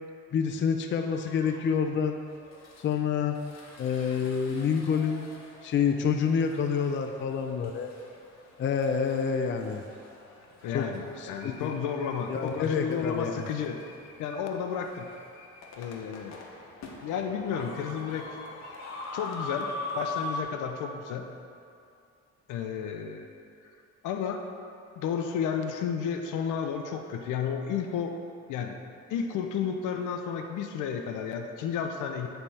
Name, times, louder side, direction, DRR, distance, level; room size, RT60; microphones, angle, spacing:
voice 1, 0.3-2.2 2.8-3.4 3.8-5.2 5.6-7.9 8.6-9.8 10.7-10.9 11.2-11.7 12.3-13.4, left 6 dB, 40° left, 4 dB, 0.4 m, -27 dB
sound 1, 1.1-1.6 2.2-20.4, left 2 dB, 60° left, 1.0 m, -43 dB
voice 2, 10.6-13.8 14.2-15.1 15.8-16.4 17.0-18.3 19.1-21.3 22.5-23.3 24.0-24.5 25.0-28.1 28.5-28.8 29.1-32.3, left 7 dB, 85° left, 4 dB, 0.6 m, -32 dB
9.2 x 3.4 x 4.2 m, 2.5 s
cardioid pair, 90°, 30 cm